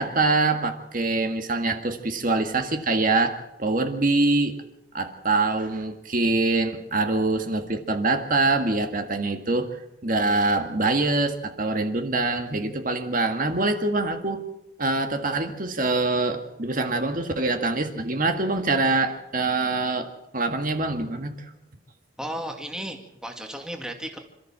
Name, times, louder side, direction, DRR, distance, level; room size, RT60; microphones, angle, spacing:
voice 1, 0.0-4.6 4.9-14.4 14.8-21.3, right 3 dB, 40° right, 5 dB, 1.8 m, -24 dB
voice 2, 22.2-24.2, right 1 dB, 5° right, 3 dB, 2.2 m, -34 dB
27.5 x 14.0 x 7.5 m, 0.89 s
head